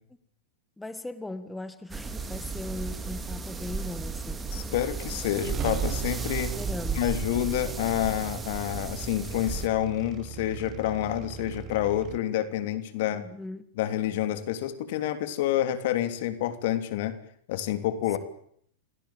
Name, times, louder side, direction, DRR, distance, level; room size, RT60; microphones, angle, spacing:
voice 1, 0.8-4.4 6.6-7.2 13.1-13.7 18.1-18.2, left 2 dB, 5° left, 12 dB, 1.6 m, -39 dB
sound 1, 1.9-9.7, right 5 dB, 15° right, 3.1 m, -34 dB
voice 2, 4.5-6.6 7.0-13.2 13.8-17.2 17.5-18.2, left 12 dB, 60° left, 9 dB, 3.2 m, -28 dB
sound 2, 5.4-12.2, right 11 dB, 35° right, 1.1 m, -39 dB
28.5 x 17.0 x 9.0 m, 0.66 s
hypercardioid pair, 105°, 0 cm